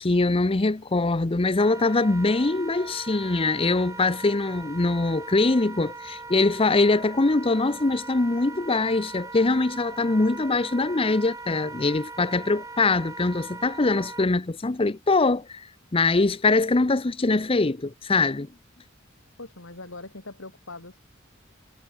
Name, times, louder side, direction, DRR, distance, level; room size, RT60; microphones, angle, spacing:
voice 1, 0.0-15.7 15.9-18.5, left 3 dB, 25° left, 0.7 m, -23 dB
Wind instrument woodwind instrument, 1.5-14.3, right 3 dB, 15° right, 5.2 m, -40 dB
voice 2, 19.4-21.0, left 2 dB, 70° left, 3.5 m, -41 dB
head